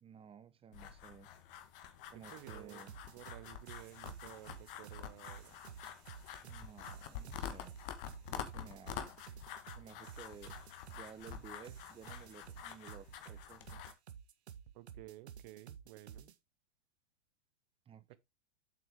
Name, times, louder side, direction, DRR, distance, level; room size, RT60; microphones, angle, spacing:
voice 1, 0.0-1.3 2.1-3.0 6.4-7.8 8.3-9.2 9.8-10.7 10.9-13.8 17.9-18.2, right 7 dB, 15° right, 1.0 m, -55 dB
sound 1, 0.7-13.9, left 9 dB, 50° left, 1.6 m, -48 dB
voice 2, 2.1-5.5 14.7-16.3 18.1-18.2, right 18 dB, 40° right, 0.8 m, -54 dB
sound 2, 2.3-16.3, right 8 dB, 65° right, 1.0 m, -53 dB
7.9 x 6.0 x 3.6 m
figure-of-eight pair, 105°, 35 cm